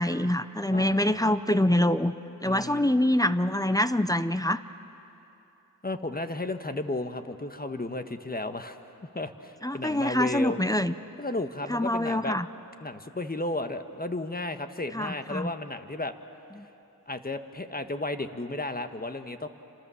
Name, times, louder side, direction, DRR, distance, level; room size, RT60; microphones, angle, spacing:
voice 1, 0.0-2.1 2.4-4.6 9.6-10.9 11.7-12.5 14.9-15.5, left 1 dB, 10° left, 12 dB, 0.8 m, -25 dB
voice 2, 0.7-1.2 2.4-2.8 5.8-8.8 9.1-10.6 11.2-12.4 12.8-16.1 17.1-19.5, left 2 dB, 25° left, 8 dB, 1.5 m, -33 dB
29.0 x 26.5 x 7.2 m, 3.0 s
cardioid pair, 50°, 35 cm